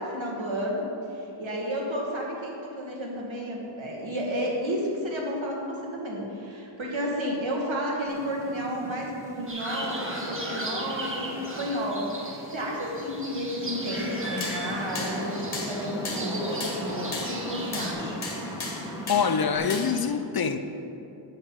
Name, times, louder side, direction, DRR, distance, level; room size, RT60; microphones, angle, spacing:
voice 1, 0.0-18.2, equal, 75° right, -2 dB, 2.0 m, -32 dB
Wind / Rain, 8.1-19.6, right 1 dB, 5° right, 1.2 m, -39 dB
sound 1, 9.5-17.9, right 1 dB, 25° right, 1.5 m, -38 dB
sound 2, 14.0-20.1, left 2 dB, 75° left, 1.8 m, -36 dB
voice 2, 19.1-20.6, left 6 dB, 50° left, 9 dB, 0.6 m, -25 dB
7.9 x 6.3 x 7.3 m, 2.8 s
wide cardioid pair, 90°, 47 cm